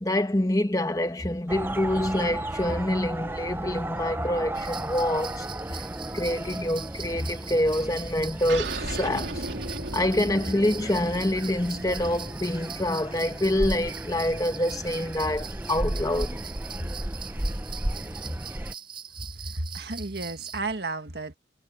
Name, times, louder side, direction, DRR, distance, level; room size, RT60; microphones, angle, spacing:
voice 1, 0.0-5.8 6.1-9.5 9.9-16.4, left 1 dB, 20° left, 1.1 m, -26 dB
sound 1, 1.5-18.7, right 1 dB, 10° right, 0.7 m, -34 dB
sound 2, 4.6-20.6, right 8 dB, 30° right, 7.4 m, -42 dB
sound 3, 8.5-13.5, right 2 dB, 90° right, 3.1 m, -37 dB
voice 2, 19.2-21.3, right 3 dB, 65° right, 1.8 m, -33 dB
head